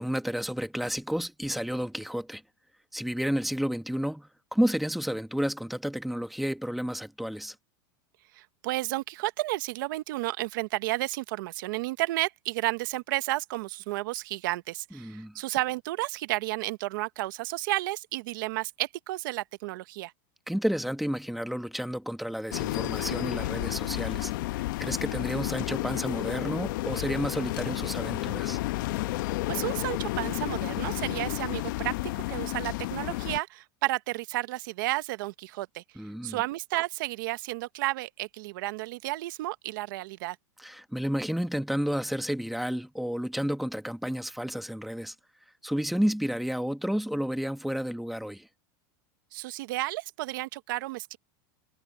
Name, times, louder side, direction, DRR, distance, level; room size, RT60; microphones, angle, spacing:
voice 1, 0.0-2.4 2.9-7.5 14.9-15.3 20.5-28.6 36.0-36.4 40.6-45.1 45.6-48.5, equal, ahead, 1.2 m, -31 dB
voice 2, 8.3-20.1 29.5-35.8 36.2-40.4 49.3-51.2, right 19 dB, 65° right, 1.1 m, -32 dB
sound 1, 22.5-33.4, left 18 dB, 65° left, 1.1 m, -31 dB
supercardioid pair, 155°, 12 cm